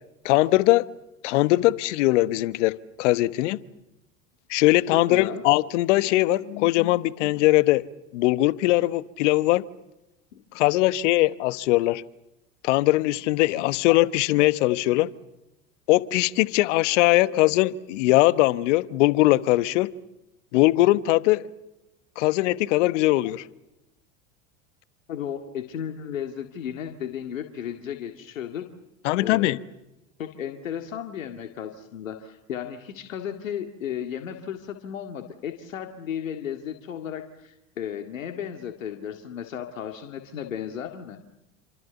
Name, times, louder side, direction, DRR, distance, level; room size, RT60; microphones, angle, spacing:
voice 1, 0.2-0.9 1.2-3.6 4.5-7.8 8.1-9.7 10.5-12.0 12.6-15.1 15.9-19.9 20.5-21.5 22.2-23.4 29.0-29.6, left 18 dB, 65° left, 1.2 m, -21 dB
voice 2, 4.9-5.4 10.3-10.4 25.1-28.7 29.2-29.5 30.2-41.2, left 9 dB, 80° left, 2.1 m, -34 dB
28.5 x 26.0 x 7.0 m
hypercardioid pair, 85°, 39 cm